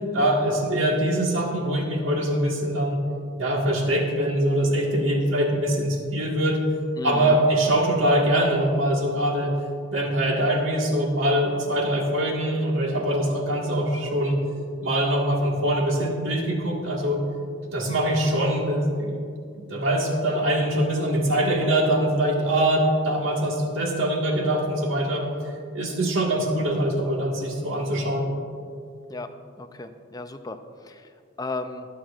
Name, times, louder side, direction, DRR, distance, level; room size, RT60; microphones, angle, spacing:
voice 1, 0.1-3.0 3.4-6.6 7.0-9.5 9.9-14.4 14.8-17.2 17.7-19.2 19.5-25.3 25.7-28.3, right 1 dB, 80° right, -1 dB, 1.7 m, -23 dB
voice 2, 7.0-7.4 29.1-29.3 29.6-30.6 30.9-31.0 31.4-31.9, left 3 dB, 20° left, 8 dB, 0.4 m, -34 dB
21.5 x 7.6 x 2.5 m, 2.4 s
head